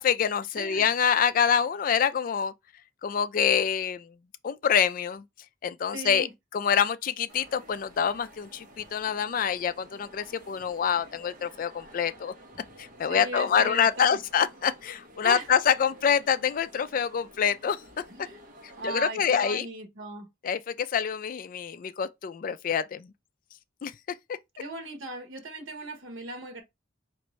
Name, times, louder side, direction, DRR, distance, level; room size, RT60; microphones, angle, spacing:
voice 1, 0.0-2.5 3.0-4.1 4.4-5.2 5.6-6.3 6.5-12.3 12.8-17.8 18.6-19.7 20.4-23.1 23.8-23.9 24.3-24.4, left 7 dB, 45° left, 0.3 m, -26 dB
voice 2, 0.5-0.9 5.9-6.3 13.1-14.2 15.2-15.5 18.1-18.4 18.8-20.3 24.6-26.6, right 2 dB, 90° right, 1.0 m, -38 dB
sound 1, 7.3-19.1, equal, 45° right, 0.9 m, -52 dB
4.4 x 2.5 x 3.0 m
head